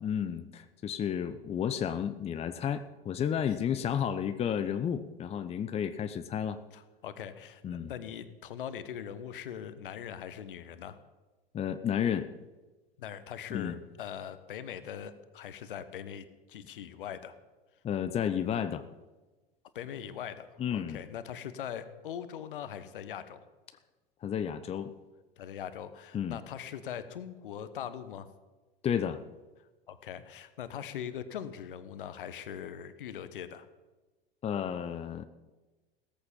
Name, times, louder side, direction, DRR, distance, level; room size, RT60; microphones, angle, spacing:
voice 1, 0.0-6.6 7.6-7.9 11.5-12.3 13.5-13.7 17.8-18.8 20.6-21.0 24.2-24.9 26.1-26.4 28.8-29.2 34.4-35.3, left 8 dB, 20° left, 11 dB, 0.8 m, -32 dB
voice 2, 6.7-11.0 13.0-17.3 19.7-23.4 25.4-28.3 29.9-33.7, left 9 dB, 60° left, 12 dB, 1.4 m, -41 dB
17.5 x 14.0 x 5.4 m, 1.2 s
figure-of-eight pair, 85°, 29 cm